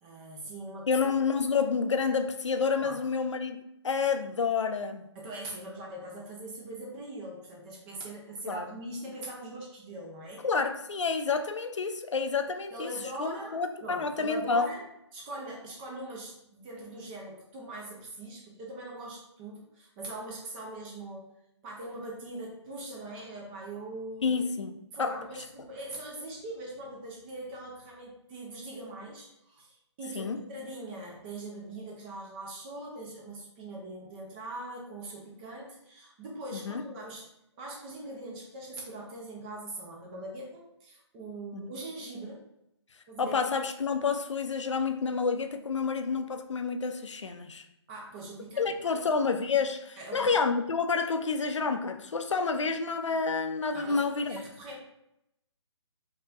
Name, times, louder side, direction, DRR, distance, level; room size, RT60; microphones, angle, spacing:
voice 1, 0.0-0.9 2.8-3.0 5.1-10.5 12.7-14.8 15.1-21.3 21.6-24.3 24.9-37.2 37.6-42.5 43.1-43.4 47.9-49.0 50.0-50.4 53.7-54.8, right 2 dB, 20° right, -3 dB, 0.8 m, -42 dB
voice 2, 0.9-3.6 3.8-5.0 8.5-8.6 10.4-12.9 13.2-14.7 24.2-25.2 30.1-30.4 36.7-36.8 41.5-41.7 43.2-47.6 48.6-54.4, left 5 dB, 80° left, 7 dB, 0.5 m, -29 dB
4.6 x 2.9 x 2.5 m, 0.83 s
figure-of-eight pair, 150°, 15 cm